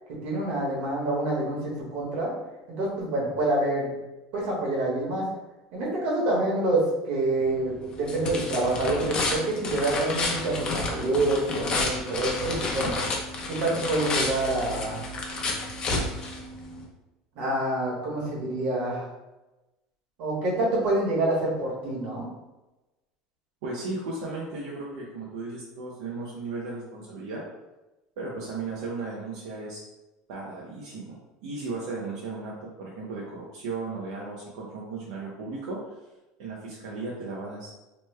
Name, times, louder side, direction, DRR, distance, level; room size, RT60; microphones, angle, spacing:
voice 1, 0.2-2.3 2.7-3.9 4.3-5.3 5.7-13.0 13.5-15.0 17.3-19.1 20.2-22.3, right 2 dB, 65° right, -4 dB, 1.3 m, -27 dB
Paper ripping, 7.4-16.8, left 2 dB, 35° left, 0.6 m, -31 dB
voice 2, 23.6-27.4 28.2-29.8 30.3-31.2 31.4-35.8 36.4-37.7, right 3 dB, 85° right, -5 dB, 0.6 m, -35 dB
3.1 x 2.2 x 3.2 m, 1.0 s
supercardioid pair, 135°, 3 cm